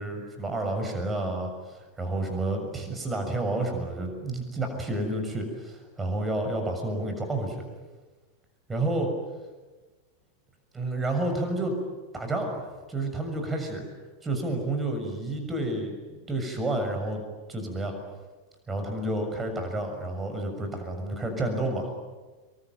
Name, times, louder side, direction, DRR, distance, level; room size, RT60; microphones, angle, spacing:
voice 1, 0.0-7.7 8.7-9.1 10.7-11.8 12.1-13.8 14.2-17.2 17.5-17.9 18.7-21.9, right 2 dB, 15° right, 4 dB, 6.7 m, -30 dB
27.0 x 23.5 x 9.3 m, 1.3 s
figure-of-eight pair, 90°, 0 cm